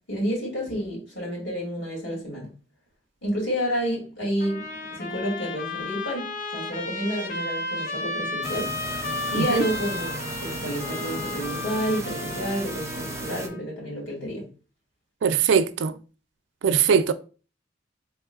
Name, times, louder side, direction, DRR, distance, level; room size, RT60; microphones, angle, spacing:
voice 1, 0.1-2.5 3.2-4.7 4.9-8.7 9.3-10.1 10.4-14.5, equal, 70° left, 2.2 m, -29 dB
Trumpet, 4.4-13.6, left 3 dB, 50° left, 0.6 m, -33 dB
sound 1, 8.4-13.5, right 3 dB, 15° right, 0.5 m, -35 dB
voice 2, 9.3-9.6 15.2-15.9 16.6-17.1, right 7 dB, 85° right, 0.4 m, -21 dB
4.0 x 3.6 x 2.3 m
head